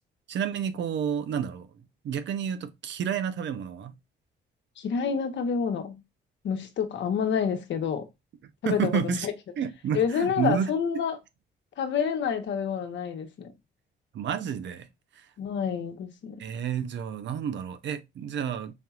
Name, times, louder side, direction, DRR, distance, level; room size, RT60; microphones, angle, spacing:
voice 1, 0.3-3.9 8.6-9.3 9.6-10.7 14.1-14.9 15.1-15.3 16.4-18.7, right 8 dB, 65° right, 0.7 m, -30 dB
voice 2, 4.8-6.0 6.4-8.0 8.6-9.3 9.9-11.2 11.8-13.5 15.4-16.4, left 7 dB, 65° left, 1.0 m, -28 dB
5.2 x 2.8 x 2.4 m
cardioid pair, 90°, 20 cm